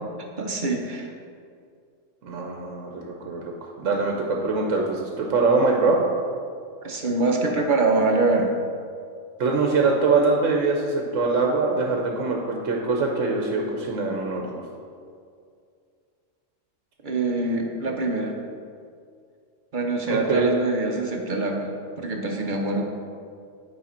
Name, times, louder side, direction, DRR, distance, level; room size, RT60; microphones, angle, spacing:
voice 1, 0.4-1.1 6.8-8.5 17.0-18.3 19.7-21.7 22.0-22.8, right 3 dB, 45° right, 1 dB, 0.8 m, -24 dB
voice 2, 2.2-6.0 9.4-14.6 20.1-20.5, right 3 dB, 75° right, 0 dB, 1.2 m, -23 dB
9.7 x 5.1 x 4.3 m, 2.3 s
omnidirectional pair, 1.3 m